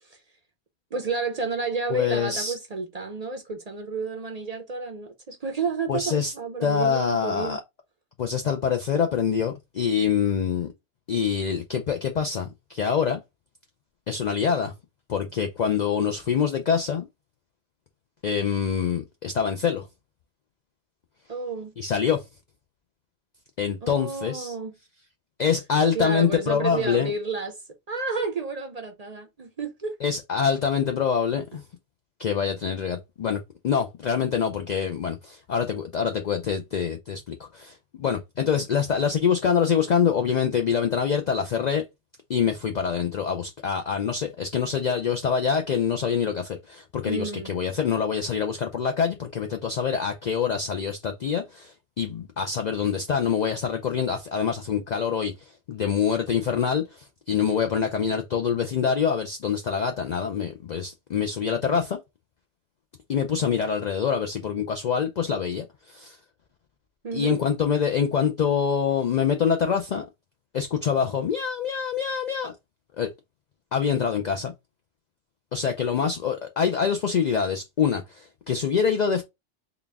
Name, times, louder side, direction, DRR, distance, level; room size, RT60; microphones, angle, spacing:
voice 1, 0.9-7.6 21.3-21.7 23.8-24.7 25.9-27.6 27.9-29.9 47.1-47.6 67.0-67.4, right 4 dB, 45° right, 0.6 m, -31 dB
voice 2, 1.9-2.5 5.9-6.3 6.6-7.6 8.2-10.7 11.1-13.2 14.1-14.7 15.1-17.1 18.2-19.9 21.8-22.2 23.6-24.5 25.4-27.1 30.0-31.6 32.2-41.8 42.3-62.0 63.1-66.2 67.1-70.1 70.5-72.5 73.0-73.1 73.7-74.5 75.5-79.2, left 7 dB, 60° left, 0.4 m, -25 dB
3.9 x 2.3 x 3.4 m
omnidirectional pair, 1.2 m